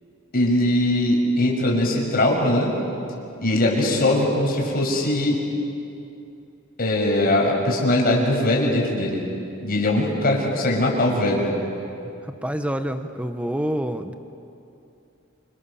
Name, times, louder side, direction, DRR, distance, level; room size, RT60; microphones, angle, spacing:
voice 1, 0.3-2.7 3.4-5.4 6.8-9.2 9.6-11.5, left 1 dB, 45° left, -1 dB, 6.1 m, -21 dB
voice 2, 12.2-14.1, equal, 5° right, 8 dB, 0.8 m, -27 dB
28.5 x 28.0 x 7.1 m, 2.7 s
head